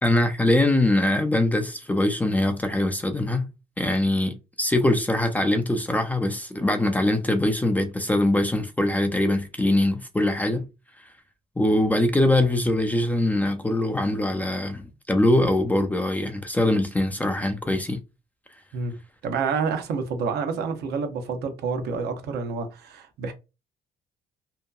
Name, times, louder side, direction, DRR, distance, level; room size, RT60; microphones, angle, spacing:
voice 1, 0.0-3.5 3.8-10.7 11.6-18.0, left 1 dB, 10° left, 0.3 m, -23 dB
voice 2, 19.2-23.3, right 5 dB, 75° right, 0.7 m, -28 dB
2.8 x 2.2 x 2.2 m
cardioid pair, 110°, 17 cm